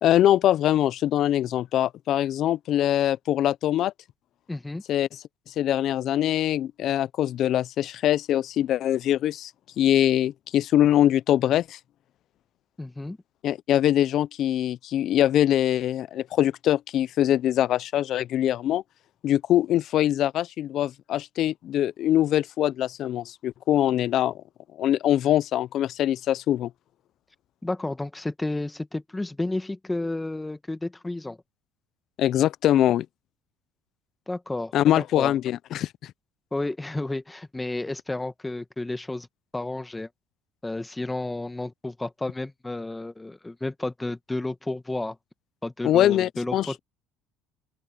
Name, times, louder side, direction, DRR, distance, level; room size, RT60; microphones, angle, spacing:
voice 1, 0.0-3.9 4.9-5.1 5.6-9.5 9.8-11.8 13.4-18.8 19.2-24.4 24.8-26.7 32.2-33.1 34.7-36.1 45.8-46.7, left 12 dB, 60° left, 0.6 m, -23 dB
voice 2, 4.5-4.8 12.8-13.2 27.6-31.4 34.3-35.4 36.5-39.3 39.5-40.1 40.6-45.2 45.6-46.8, left 2 dB, 10° left, 1.6 m, -31 dB
open air
supercardioid pair, 90°, 0 cm